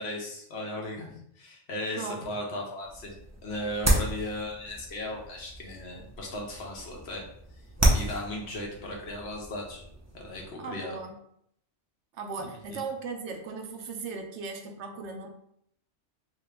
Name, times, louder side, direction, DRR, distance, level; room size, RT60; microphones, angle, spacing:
voice 1, 0.0-3.1 3.4-7.2 7.9-9.8 10.1-10.9 12.7-12.8, left 1 dB, 65° left, -1 dB, 1.1 m, -36 dB
sound 1, 2.8-10.5, right 1 dB, 25° right, 0.4 m, -31 dB
voice 2, 10.6-11.2 12.1-15.3, right 4 dB, 70° right, 4 dB, 0.8 m, -37 dB
3.0 x 2.9 x 3.4 m, 0.70 s
omnidirectional pair, 1.2 m